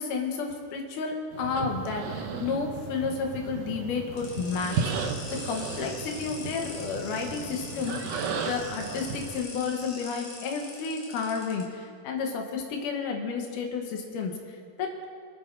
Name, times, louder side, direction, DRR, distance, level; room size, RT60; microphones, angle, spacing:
voice 1, 0.0-4.9 5.5-8.0 8.4-14.9, left 5 dB, 85° left, 2 dB, 2.7 m, -31 dB
sound 1, 1.3-9.4, right 5 dB, 90° right, 2.5 m, -35 dB
sound 2, 4.2-11.6, left 3 dB, 70° left, 3.3 m, -43 dB
24.5 x 9.0 x 2.6 m, 2.2 s
omnidirectional pair, 3.6 m